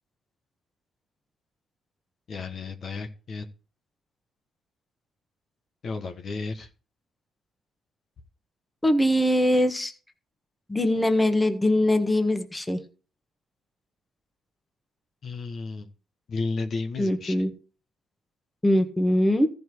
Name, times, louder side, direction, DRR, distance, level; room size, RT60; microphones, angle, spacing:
voice 1, 2.3-3.4 5.8-6.7 15.2-15.9 16.3-17.4, left 3 dB, 55° left, 6 dB, 1.3 m, -33 dB
voice 2, 8.8-9.9 10.7-12.8 17.0-17.5 18.6-19.5, left 1 dB, 15° left, 7 dB, 1.5 m, -22 dB
14.0 x 5.3 x 4.7 m, 0.36 s
cardioid pair, 90°, 0 cm